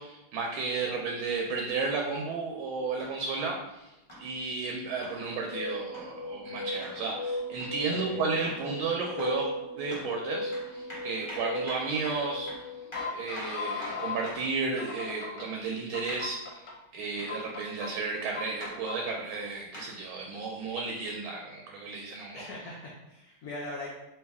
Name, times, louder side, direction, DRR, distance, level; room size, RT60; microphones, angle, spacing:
voice 1, 0.0-3.9 4.2-9.5 9.8-12.5 13.1-22.4, right 4 dB, 80° right, 0 dB, 1.3 m, -33 dB
sound 1, 3.0-3.2 4.1-4.3 5.0-5.2 5.9-6.1 6.8-7.0 7.6-7.8 8.4-8.7 9.2-9.4 9.9-10.1 10.5-14.5 16.1-16.3 17.2-17.4 18.6-18.8 19.7-19.9 20.8-20.9, equal, 40° left, 0.4 m, -44 dB
sound 2, 5.3-14.3 14.8-15.5 15.9-16.7 17.3-17.9 18.4-19.2, left 2 dB, 65° left, 1.1 m, -37 dB
voice 2, 7.9-8.2 22.3-23.9, left 2 dB, 85° left, -4 dB, 0.8 m, -40 dB
3.1 x 3.0 x 3.5 m, 0.94 s
omnidirectional pair, 2.3 m